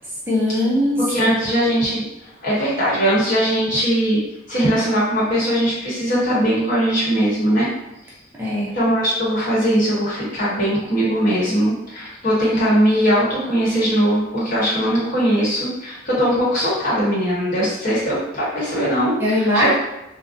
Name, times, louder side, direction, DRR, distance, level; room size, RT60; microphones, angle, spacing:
voice 1, 0.3-1.0 1.3-1.4 8.4-8.8 19.2-19.8, left 1 dB, 10° right, -6 dB, 0.4 m, -20 dB
voice 2, 1.1-2.1 2.4-4.2 4.5-7.7 8.7-19.8, equal, 45° left, -8 dB, 1.1 m, -20 dB
2.4 x 2.1 x 2.5 m, 0.91 s
head